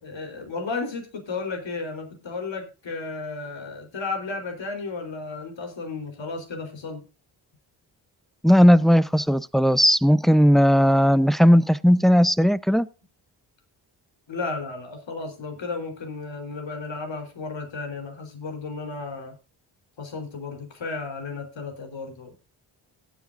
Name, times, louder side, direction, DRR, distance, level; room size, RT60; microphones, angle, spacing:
voice 1, 0.0-7.0 14.3-19.3 20.0-22.3, left 4 dB, 60° left, 3.9 m, -33 dB
voice 2, 8.4-12.9, equal, ahead, 0.6 m, -17 dB
17.0 x 9.2 x 2.5 m
supercardioid pair, 45°, 49 cm